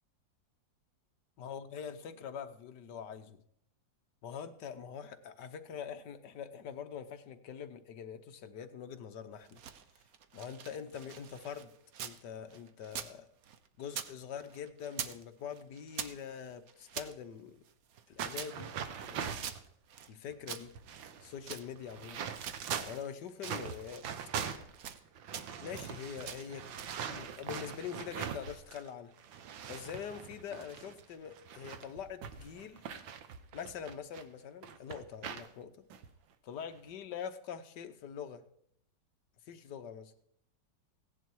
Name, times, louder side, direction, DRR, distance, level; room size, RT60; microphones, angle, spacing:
voice 1, 1.4-3.4 4.2-9.6 10.3-11.7 12.0-13.3 13.8-17.6 18.1-18.7 19.0-19.5 20.1-20.8 21.2-22.2 22.8-24.0 25.6-26.7 27.1-29.1 29.7-32.8 33.5-35.7 36.4-38.4 39.5-40.1, left 7 dB, 65° left, 8 dB, 1.5 m, -44 dB
sound 1, 9.3-12.2 12.5-14.1 14.4-15.2 15.5-17.1 17.6-20.1 20.4-22.1 22.4-23.0 23.3-24.1 24.4-25.0 25.3-25.9 26.2-27.0, right 8 dB, 60° right, 1.2 m, -45 dB
sound 2, 18.2-19.6 20.3-20.4 20.6-23.1 23.4-28.9 29.2-34.2 34.6-35.5 35.9-36.1 36.6-36.9, right 8 dB, 90° right, 1.7 m, -42 dB
16.5 x 10.5 x 4.6 m, 0.70 s
omnidirectional pair, 2.0 m